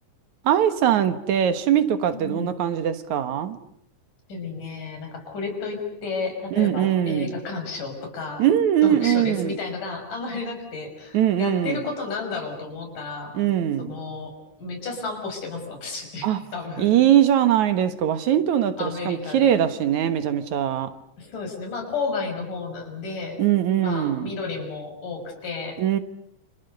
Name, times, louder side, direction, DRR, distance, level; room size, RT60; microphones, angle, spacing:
voice 1, 0.4-3.6 6.5-7.3 8.4-9.5 11.1-11.8 13.3-14.0 16.2-16.4 16.8-20.9 23.4-24.3 25.8-26.0, right 10 dB, 70° right, 2.6 m, -21 dB
voice 2, 2.1-2.5 4.3-8.4 8.8-13.4 13.8-14.3 14.6-16.9 18.8-19.6 21.2-23.4 23.8-25.8, left 4 dB, 80° left, 7.7 m, -32 dB
29.5 x 28.0 x 6.8 m
omnidirectional pair, 3.6 m